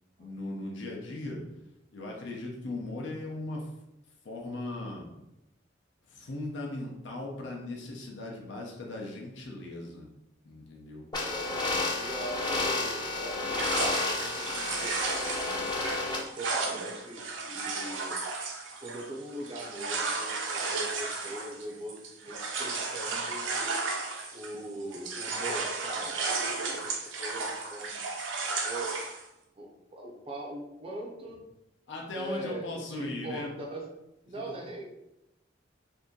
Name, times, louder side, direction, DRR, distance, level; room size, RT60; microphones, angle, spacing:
voice 1, 0.2-1.4 1.9-3.7 4.2-5.1 6.1-10.1 10.4-11.0 31.9-33.5, left 2 dB, 70° left, -1 dB, 0.7 m, -38 dB
sound 1, 11.1-16.2, left 3 dB, 25° left, 0.6 m, -31 dB
voice 2, 11.3-15.9 16.4-18.5 18.8-23.5 24.3-28.1 28.6-29.0 29.6-31.4 32.1-33.9 34.2-34.8, right 1 dB, 30° right, -1 dB, 0.5 m, -41 dB
sound 2, 13.5-24.6 24.9-29.2, right 3 dB, 80° right, 0.6 m, -34 dB
2.7 x 2.6 x 3.7 m, 0.88 s
head